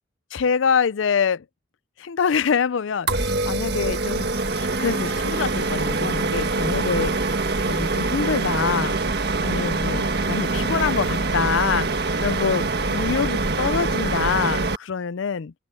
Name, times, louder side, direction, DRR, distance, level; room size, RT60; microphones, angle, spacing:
voice 1, 0.3-1.4 2.0-4.3 4.6-7.4 7.7-9.0 9.4-15.5, left 6 dB, 85° left, 0.5 m, -25 dB
sound 1, 3.1-14.8, right 3 dB, 55° right, 1.6 m, -24 dB
open air
head